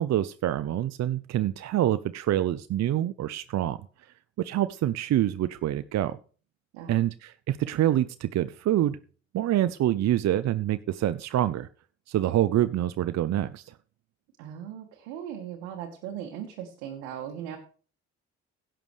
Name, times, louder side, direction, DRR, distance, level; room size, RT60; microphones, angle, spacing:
voice 1, 0.0-3.8 4.4-6.2 6.9-9.0 9.3-11.7 12.1-13.7, right 12 dB, 50° right, 14 dB, 0.6 m, -26 dB
voice 2, 14.4-17.6, right 9 dB, 80° right, 2 dB, 1.5 m, -38 dB
16.5 x 7.5 x 3.2 m, 0.40 s
hypercardioid pair, 45°, 35 cm